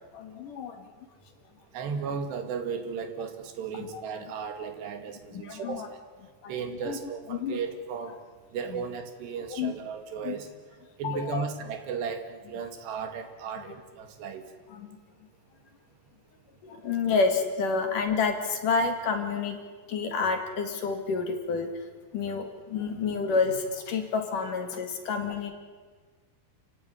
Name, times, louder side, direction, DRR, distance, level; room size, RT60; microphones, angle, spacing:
voice 1, 0.1-0.9 3.7-4.0 5.3-5.9 6.4-6.5 6.9-7.0 7.3-7.6 9.5-9.7 10.2-10.4 11.0-11.4 14.7-15.0 16.6-19.6 19.9-21.7 22.1-25.5, left 4 dB, 55° left, 5 dB, 3.3 m, -29 dB
voice 2, 1.7-6.0 6.5-8.1 8.5-10.5 11.0-14.4, right 6 dB, 80° right, 7 dB, 4.3 m, -35 dB
29.5 x 15.5 x 9.8 m, 1.5 s
omnidirectional pair, 4.8 m